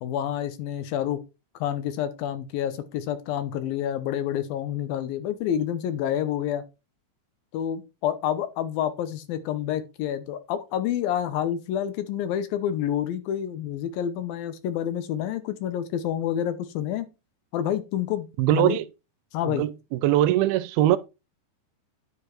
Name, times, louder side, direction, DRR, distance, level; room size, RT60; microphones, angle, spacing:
voice 1, 0.0-1.2 1.6-6.7 7.5-17.1 17.5-18.8 19.3-19.6, left 10 dB, 75° left, 2.5 m, -28 dB
voice 2, 18.4-18.9 19.4-21.0, right 13 dB, 80° right, 2.4 m, -22 dB
9.9 x 5.1 x 4.4 m
omnidirectional pair, 4.5 m